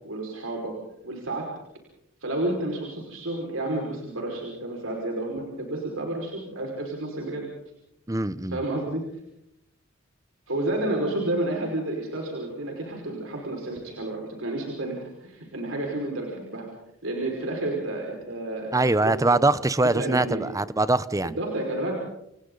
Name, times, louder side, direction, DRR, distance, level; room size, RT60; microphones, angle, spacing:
voice 1, 0.0-0.7 1.0-1.5 2.2-7.5 8.5-9.0 10.5-16.7 17.0-19.4 19.9-20.5 21.2-22.0, right 2 dB, 80° right, 0 dB, 5.5 m, -30 dB
voice 2, 8.1-8.6 18.7-21.4, right 2 dB, 15° right, 15 dB, 0.9 m, -23 dB
29.0 x 28.0 x 4.0 m, 0.79 s
head